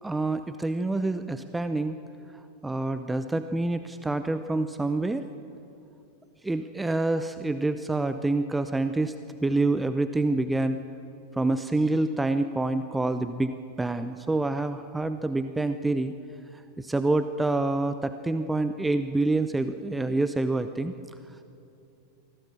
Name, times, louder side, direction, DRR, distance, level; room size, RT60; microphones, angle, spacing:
voice 1, 0.0-2.0 2.6-5.2 6.4-9.1 9.4-10.8 11.3-16.1 16.8-20.9, right 2 dB, 10° right, 10 dB, 0.7 m, -27 dB
24.5 x 16.0 x 7.1 m, 2.6 s
figure-of-eight pair, 90°, 0 cm